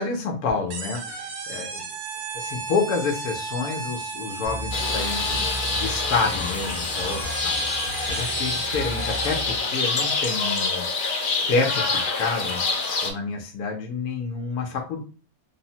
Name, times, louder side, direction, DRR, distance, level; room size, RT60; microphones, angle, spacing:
voice 1, 0.0-1.8 2.3-5.4 5.7-7.6 8.1-10.9 11.5-12.6 13.0-15.0, left 4 dB, 90° left, 2 dB, 1.1 m, -28 dB
sound 1, 0.7-9.6, right 5 dB, 75° right, 1.1 m, -35 dB
sound 2, 4.4-10.1, equal, 55° right, 0.4 m, -36 dB
sound 3, 4.7-13.1, left 4 dB, 65° left, 0.5 m, -26 dB
3.4 x 2.0 x 2.7 m, 0.38 s
omnidirectional pair, 1.5 m